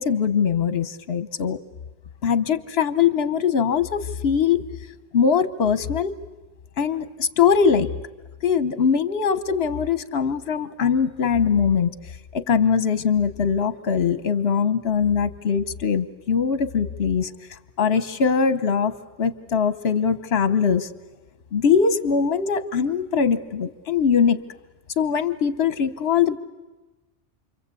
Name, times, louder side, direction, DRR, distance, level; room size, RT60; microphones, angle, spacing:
voice 1, 0.0-1.6 2.2-4.6 5.1-6.1 6.8-7.9 8.4-11.9 12.3-17.3 17.8-20.9 21.5-24.4 25.0-26.4, left 6 dB, 60° left, 13 dB, 1.3 m, -21 dB
28.5 x 24.0 x 8.3 m, 1.2 s
omnidirectional pair, 1.2 m